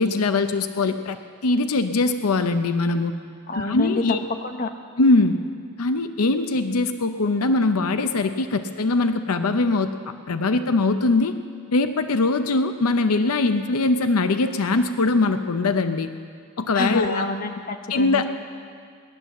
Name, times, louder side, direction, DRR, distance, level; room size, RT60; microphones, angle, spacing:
voice 1, 0.0-3.1 3.5-4.2 5.0-5.4 5.8-9.9 10.3-11.3 11.7-16.1 16.6-17.3 17.9-18.2, left 3 dB, 80° left, 9 dB, 0.7 m, -21 dB
voice 2, 3.5-4.0 4.4-4.7 16.7-18.2, left 2 dB, 40° left, 5 dB, 1.0 m, -27 dB
18.0 x 11.5 x 7.2 m, 2.1 s
head